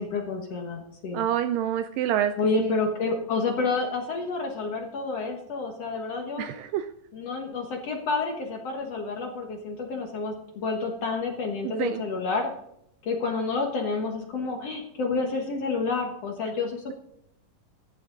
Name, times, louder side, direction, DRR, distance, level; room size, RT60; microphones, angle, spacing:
voice 1, 0.0-1.2 2.4-6.5 7.1-12.5 13.0-16.9, left 4 dB, 55° left, 2 dB, 1.9 m, -29 dB
voice 2, 1.1-2.3 2.6-2.8 6.4-6.9 11.8-12.0, right 11 dB, 80° right, 10 dB, 2.0 m, -27 dB
14.0 x 10.5 x 3.8 m, 0.76 s
omnidirectional pair, 4.3 m